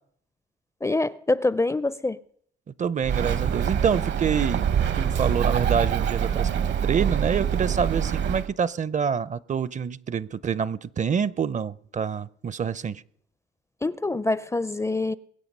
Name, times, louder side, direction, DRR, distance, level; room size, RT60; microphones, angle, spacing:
voice 1, 0.8-2.2 13.8-15.1, left 2 dB, 15° left, 0.4 m, -25 dB
voice 2, 2.8-13.0, right 7 dB, 40° right, 0.6 m, -27 dB
Bird, 3.0-8.5, right 8 dB, 65° right, 1.0 m, -25 dB
22.5 x 8.2 x 5.4 m
cardioid pair, 90°, 20 cm